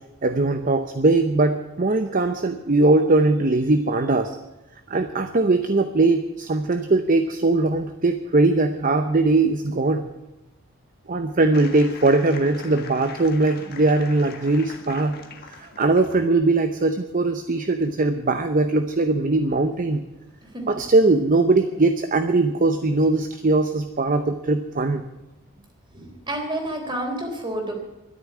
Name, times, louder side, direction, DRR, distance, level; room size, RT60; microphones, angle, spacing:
voice 1, 0.2-4.4 4.9-10.1 11.1-15.2 15.6-20.0 20.7-25.0, right 2 dB, 40° right, 8 dB, 0.7 m, -20 dB
sound 1, 11.5-16.2, left 5 dB, 45° left, 1.6 m, -42 dB
voice 2, 25.9-27.7, right 1 dB, 20° right, 3 dB, 3.5 m, -29 dB
12.5 x 10.5 x 9.6 m, 1.0 s
head